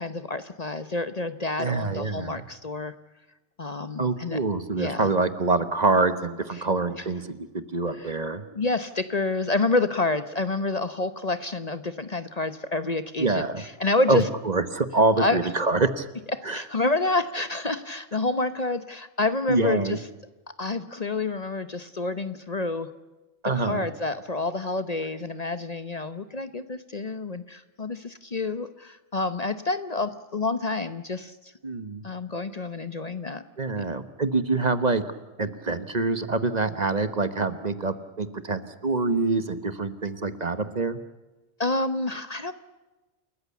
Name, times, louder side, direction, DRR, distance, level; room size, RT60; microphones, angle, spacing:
voice 1, 0.0-2.9 3.6-4.4 4.7-5.1 6.5-6.6 7.0-7.1 7.9-8.1 8.5-14.3 15.2-15.4 16.3-20.0 20.6-22.9 23.6-31.5 32.0-33.4 33.7-33.8 41.6-42.5, left 3 dB, 35° left, 12 dB, 1.0 m, -28 dB
voice 2, 1.6-2.4 4.0-8.4 13.2-13.6 14.1-16.0 16.4-16.6 19.5-20.0 23.4-23.9 31.6-32.0 33.6-35.0 35.4-41.0, right 3 dB, 40° right, 12 dB, 1.3 m, -25 dB
29.0 x 14.5 x 8.3 m, 1.1 s
omnidirectional pair, 1.2 m